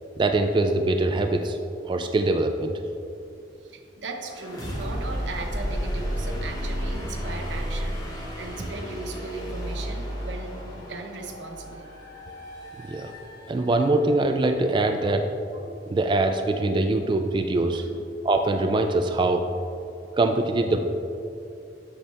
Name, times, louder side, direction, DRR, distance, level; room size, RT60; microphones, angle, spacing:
voice 1, 0.2-1.6 1.8-2.8 12.8-13.1 13.5-15.3 15.7-17.8 18.2-19.8 20.2-20.8, right 2 dB, 25° right, 5 dB, 0.3 m, -23 dB
voice 2, 3.6-11.9 17.7-18.0, right 3 dB, 85° right, 4 dB, 0.8 m, -38 dB
sound 1, 4.3-14.0, equal, 20° left, 1.6 m, -32 dB
8.1 x 6.2 x 3.4 m, 2.7 s
head